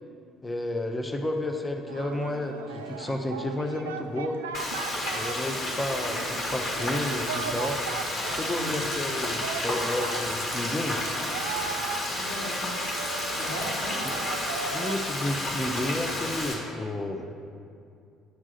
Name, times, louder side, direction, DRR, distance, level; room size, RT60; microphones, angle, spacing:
voice 1, 0.4-4.4 5.1-7.8 8.3-11.0 14.0-14.1 14.7-17.3, left 1 dB, 15° left, 4 dB, 0.7 m, -31 dB
Singing, 1.9-15.0, right 7 dB, 80° right, 0.3 m, -38 dB
Frying (food), 4.5-16.5, left 1 dB, 45° left, 1.7 m, -31 dB
voice 2, 12.2-12.7 13.3-14.0, left 1 dB, 90° left, -6 dB, 1.4 m, -38 dB
9.2 x 3.6 x 6.6 m, 2.4 s
figure-of-eight pair, 50°, 0 cm